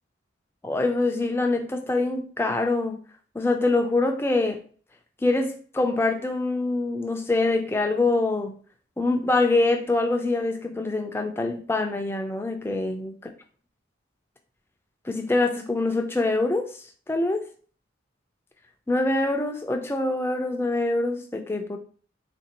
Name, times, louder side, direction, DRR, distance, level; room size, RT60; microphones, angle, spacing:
voice 1, 0.6-3.0 3.3-4.6 5.2-8.5 9.0-13.1 15.1-17.5 18.9-21.8, left 2 dB, 10° left, 0.3 m, -24 dB
3.6 x 2.6 x 2.8 m
head